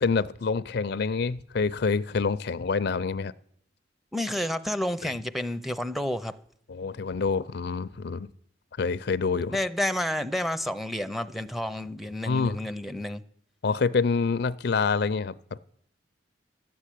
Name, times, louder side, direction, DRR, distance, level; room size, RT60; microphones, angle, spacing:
voice 1, 0.0-3.3 5.0-5.1 6.7-8.3 8.8-9.6 12.3-12.6 13.6-15.6, left 4 dB, 60° left, 0.5 m, -27 dB
voice 2, 4.1-6.3 9.5-13.2, left 1 dB, ahead, 0.6 m, -30 dB
13.5 x 7.5 x 10.0 m
head